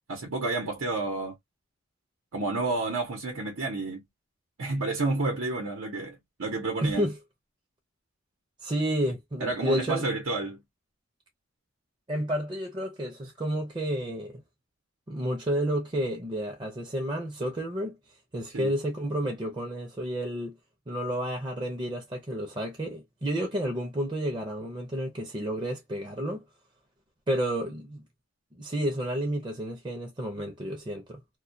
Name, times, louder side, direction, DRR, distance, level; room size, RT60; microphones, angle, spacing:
voice 1, 0.1-1.4 2.3-4.0 4.6-7.1 9.4-10.6 18.5-18.7, right 3 dB, 85° right, 0.8 m, -30 dB
voice 2, 6.8-7.2 8.6-10.0 12.1-14.4 15.1-17.9 18.3-20.5 20.9-26.4 27.3-28.0 28.5-31.2, equal, 20° right, 0.5 m, -31 dB
2.2 x 2.2 x 2.5 m
head